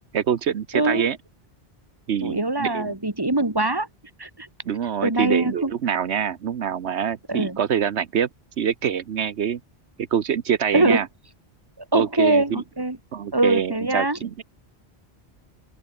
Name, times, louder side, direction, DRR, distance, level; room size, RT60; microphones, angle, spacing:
voice 1, 0.1-1.2 2.1-2.9 4.7-8.3 8.6-9.6 10.1-11.1 11.9-12.6 13.1-14.4, right 8 dB, 80° right, 1.2 m, -25 dB
voice 2, 0.7-1.1 2.2-3.9 4.2-4.5 5.0-5.7 7.3-7.6 10.7-11.0 11.9-13.0 13.3-14.2, right 2 dB, 20° right, 2.3 m, -22 dB
open air
omnidirectional pair, 1.1 m